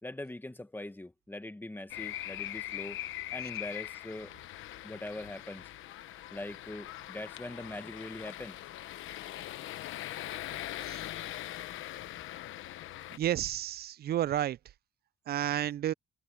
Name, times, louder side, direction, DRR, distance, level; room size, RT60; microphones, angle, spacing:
voice 1, 0.0-3.0 3.3-4.3 4.8-5.7 6.3-8.6, left 1 dB, 10° left, 1.5 m, -42 dB
sound 1, 1.9-13.2, left 14 dB, 85° left, 1.1 m, -41 dB
voice 2, 13.2-14.6 15.3-15.9, right 12 dB, 55° right, 0.4 m, -31 dB
cardioid pair, 90°, 20 cm